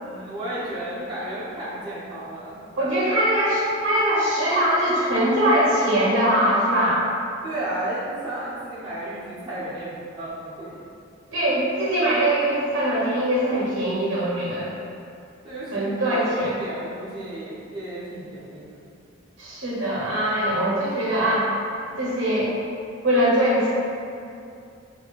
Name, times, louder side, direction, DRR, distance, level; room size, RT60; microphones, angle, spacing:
voice 1, 0.0-2.6 7.4-10.8 15.4-18.6, right 1 dB, 25° right, -10 dB, 0.6 m, -33 dB
voice 2, 2.8-7.0 11.3-14.7 15.7-16.5 19.4-21.5 22.0-22.5 23.0-23.7, right 1 dB, 65° right, -8 dB, 0.6 m, -22 dB
4.2 x 2.4 x 2.2 m, 2.5 s
head